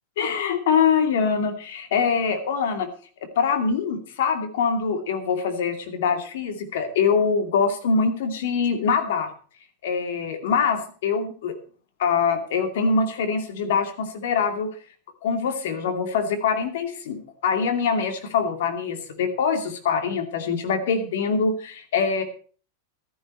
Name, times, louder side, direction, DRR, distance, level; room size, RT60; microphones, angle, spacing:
voice 1, 0.2-2.9 3.4-9.3 9.8-11.6 12.0-14.7 15.2-22.2, left 5 dB, 75° left, 7 dB, 2.4 m, -24 dB
13.0 x 11.0 x 4.3 m, 0.40 s
hypercardioid pair, 120°, 0 cm